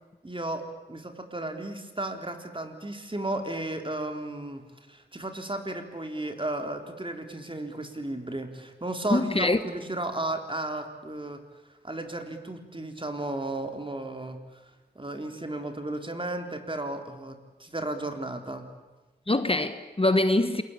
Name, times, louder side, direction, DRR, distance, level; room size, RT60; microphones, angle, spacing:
voice 1, 0.2-4.6 4.9-11.4 11.8-14.4 15.0-18.7, right 1 dB, 30° right, 3.8 m, -34 dB
voice 2, 9.1-9.6 19.3-20.6, left 2 dB, 35° left, 1.5 m, -23 dB
28.5 x 22.0 x 8.6 m
wide cardioid pair, 55°, 17 cm